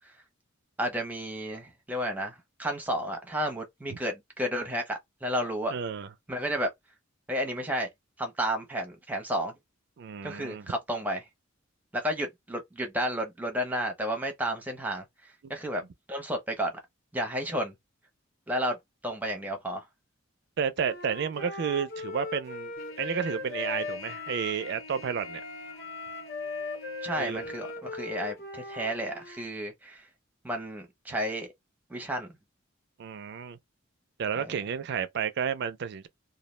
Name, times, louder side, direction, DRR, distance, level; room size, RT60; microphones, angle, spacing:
voice 1, 0.8-5.8 6.3-6.7 7.3-7.9 8.2-9.5 10.2-11.2 11.9-15.0 15.5-15.8 16.1-16.7 17.1-17.7 18.5-18.8 19.0-19.8 27.0-30.0 30.4-31.5 31.9-32.3 34.4-34.6, equal, 10° right, 0.6 m, -32 dB
voice 2, 5.7-6.1 10.0-10.7 15.4-15.5 20.6-25.4 27.2-27.4 33.0-33.6 34.2-36.1, right 7 dB, 55° right, 0.3 m, -31 dB
Wind instrument woodwind instrument, 20.8-24.9 25.2-29.4, left 3 dB, 50° left, 0.7 m, -39 dB
Trumpet, 22.8-27.8, left 3 dB, 70° left, 0.4 m, -47 dB
2.2 x 2.1 x 3.1 m
head